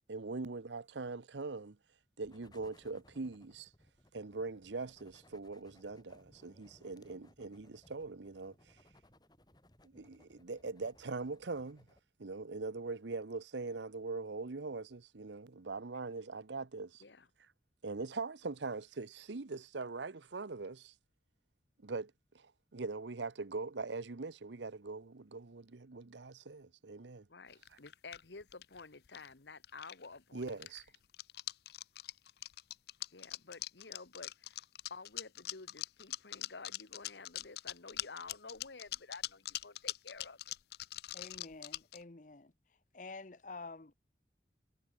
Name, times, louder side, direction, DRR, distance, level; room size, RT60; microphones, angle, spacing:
voice 1, 0.1-1.8 2.2-3.7 4.1-8.8 9.8-11.8 12.2-17.0 17.8-20.9 21.8-27.3 30.3-30.8, right 3 dB, 85° right, 0.9 m, -42 dB
sound 1, 2.2-12.0, left 1 dB, 25° left, 3.2 m, -65 dB
voice 2, 27.3-30.8 33.1-34.6 34.9-40.4, left 4 dB, 80° left, 1.4 m, -51 dB
sound 2, 27.5-29.3 29.6-30.2 30.4-42.0, left 15 dB, 60° left, 0.4 m, -42 dB
voice 3, 41.1-42.5 42.9-43.9, left 3 dB, 45° left, 0.9 m, -48 dB
head